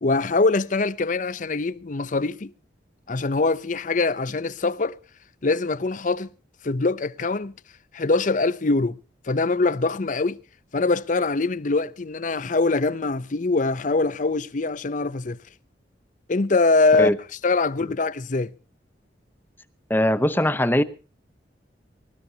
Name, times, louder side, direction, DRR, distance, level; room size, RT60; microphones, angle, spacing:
voice 1, 0.0-2.5 3.1-5.0 5.4-6.3 6.6-7.5 7.9-9.0 9.3-10.4 10.7-15.4 16.3-17.1 17.4-18.5, left 3 dB, 45° left, 0.6 m, -23 dB
voice 2, 19.9-20.8, left 1 dB, 10° left, 0.8 m, -20 dB
21.0 x 18.5 x 2.8 m
head